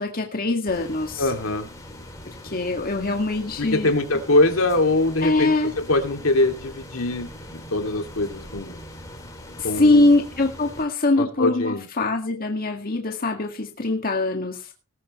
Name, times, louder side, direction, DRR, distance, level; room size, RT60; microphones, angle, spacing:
voice 1, 0.0-1.3 2.2-3.9 5.2-5.7 9.6-14.7, left 2 dB, 45° left, 3 dB, 1.9 m, -23 dB
sound 1, 0.7-10.9, left 1 dB, 15° left, 4.2 m, -41 dB
voice 2, 1.2-1.7 3.6-8.8 9.6-10.1 11.2-11.8, left 2 dB, 70° left, 5 dB, 2.5 m, -23 dB
19.5 x 11.5 x 3.1 m, 0.32 s
head